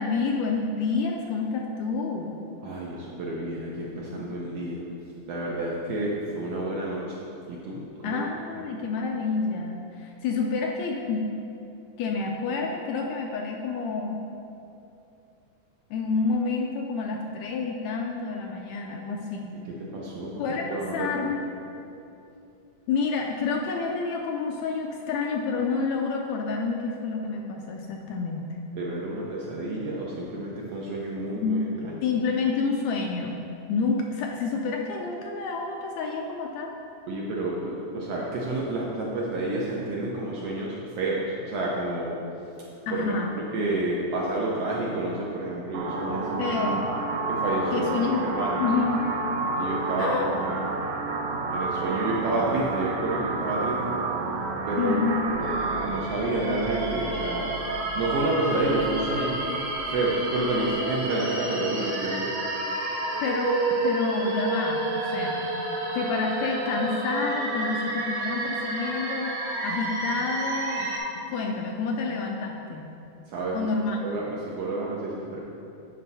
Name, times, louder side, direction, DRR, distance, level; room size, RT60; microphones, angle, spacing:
voice 1, 0.0-2.4 4.2-4.3 8.0-11.3 12.0-14.2 15.9-19.6 20.4-21.4 22.9-28.4 31.2-31.6 32.0-33.4 33.7-36.7 42.9-43.4 46.4-46.9 47.7-48.3 48.6-49.1 50.0-50.3 54.8-55.3 63.2-65.4 65.9-70.9 71.3-72.8 73.5-74.0, left 4 dB, 80° left, 1 dB, 1.7 m, -28 dB
voice 2, 2.6-4.8 5.3-7.2 7.5-8.2 19.7-20.4 20.7-21.1 28.7-31.6 31.9-32.0 37.1-42.1 42.9-46.5 47.3-48.6 49.5-50.6 51.5-53.8 54.7-55.5 55.8-57.5 57.9-59.4 59.9-62.3 73.3-73.7 74.0-75.4, right 2 dB, 70° right, -4 dB, 1.6 m, -29 dB
sound 1, 45.7-55.9, right 3 dB, 85° right, 2.3 m, -29 dB
sound 2, 55.2-60.7, right 2 dB, 65° left, 1.1 m, -43 dB
sound 3, 55.4-71.0, right 2 dB, 50° right, 1.5 m, -30 dB
9.7 x 5.3 x 4.1 m, 2.7 s
omnidirectional pair, 3.6 m